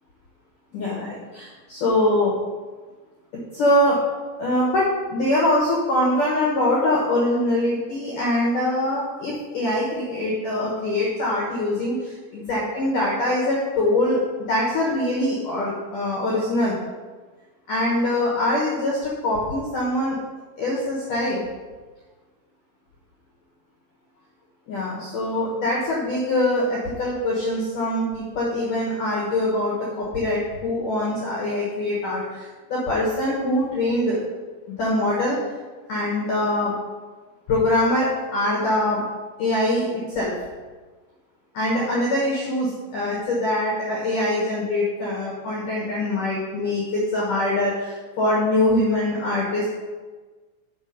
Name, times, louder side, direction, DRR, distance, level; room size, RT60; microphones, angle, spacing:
voice 1, 0.7-2.3 3.5-4.0 4.4-4.8 5.1-11.9 12.3-14.2 14.5-16.8 17.7-19.0 19.2-20.1 20.6-21.4 24.7-32.2 32.7-34.2 34.7-35.4 35.9-36.7 37.5-39.0 39.4-40.3 41.5-47.7 48.2-49.7, left 1 dB, 75° left, -5 dB, 1.9 m, -23 dB
7.3 x 5.9 x 5.3 m, 1.4 s
omnidirectional pair, 6.0 m